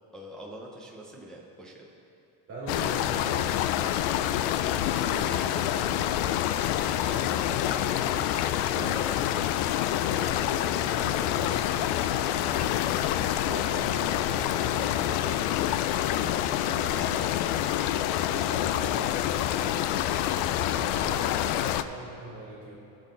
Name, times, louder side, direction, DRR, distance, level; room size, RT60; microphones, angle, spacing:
voice 1, 0.1-1.9 7.0-9.3, right 1 dB, ahead, -4 dB, 0.8 m, -44 dB
voice 2, 2.5-6.1 7.5-7.7 8.7-9.2 10.0-15.7 16.2-17.2 17.6-19.2 19.5-22.8, right 1 dB, 30° right, -10 dB, 3.2 m, -41 dB
sound 1, 2.7-21.8, left 12 dB, 75° left, 0.7 m, -27 dB
19.5 x 7.8 x 3.9 m, 2.6 s
cardioid pair, 170°, 49 cm